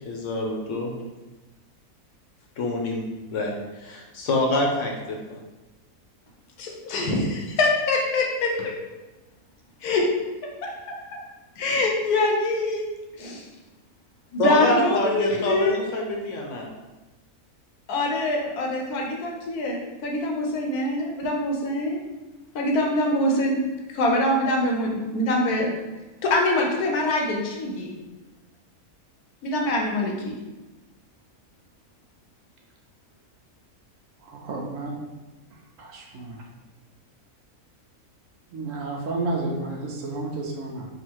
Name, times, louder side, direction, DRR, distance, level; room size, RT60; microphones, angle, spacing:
voice 1, 0.1-0.9 2.6-3.0 3.3-5.4 14.4-16.7, left 1 dB, 60° left, 0 dB, 1.0 m, -26 dB
voice 2, 6.6-8.7 9.8-10.1 10.6-10.9 11.6-12.9 13.2-13.5 14.3-15.8 17.9-22.0 22.5-23.6 23.9-25.7 26.2-27.9 29.4-30.4, left 2 dB, 85° left, 0 dB, 1.3 m, -24 dB
voice 3, 34.2-35.0 35.8-36.4 38.5-40.9, right 2 dB, 65° right, 0 dB, 0.9 m, -31 dB
3.6 x 2.5 x 4.5 m, 1.1 s
omnidirectional pair, 1.6 m